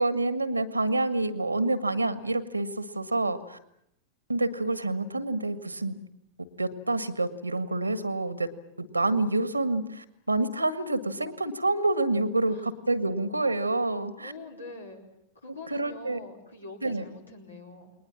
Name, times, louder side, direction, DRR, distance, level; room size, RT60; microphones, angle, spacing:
voice 1, 0.0-3.6 4.3-6.0 6.6-8.5 8.8-14.3 15.7-16.2 16.8-17.0, right 2 dB, 85° right, 13 dB, 1.7 m, -28 dB
voice 2, 14.2-15.0 15.4-17.9, left 2 dB, 80° left, 2 dB, 4.6 m, -44 dB
29.5 x 21.0 x 7.2 m, 0.77 s
figure-of-eight pair, 90°, 0 cm